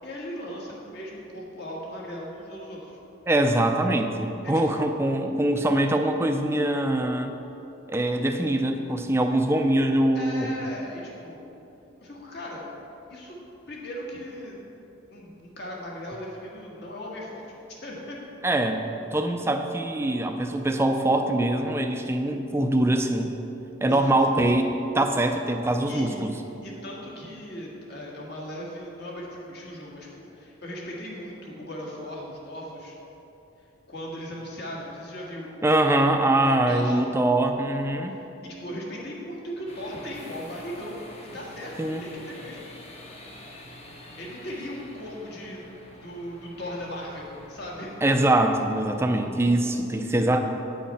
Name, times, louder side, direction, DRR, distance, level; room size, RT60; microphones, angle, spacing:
voice 1, 0.0-3.0 4.4-4.9 10.1-11.5 12.0-12.7 13.1-13.4 13.7-14.6 15.1-18.2 23.8-24.1 25.9-33.0 33.9-35.9 36.4-37.0 38.1-41.0 41.3-42.7 44.2-45.6 46.0-47.9, equal, 50° left, -3 dB, 1.7 m, -38 dB
voice 2, 3.3-7.4 7.9-10.5 18.4-23.3 23.8-26.4 35.6-38.2 41.8-42.0 48.0-50.4, right 1 dB, 10° right, 5 dB, 0.4 m, -23 dB
sound 1, 39.7-49.2, left 1 dB, 30° left, 0.9 m, -47 dB
9.3 x 6.3 x 5.6 m, 3.0 s
head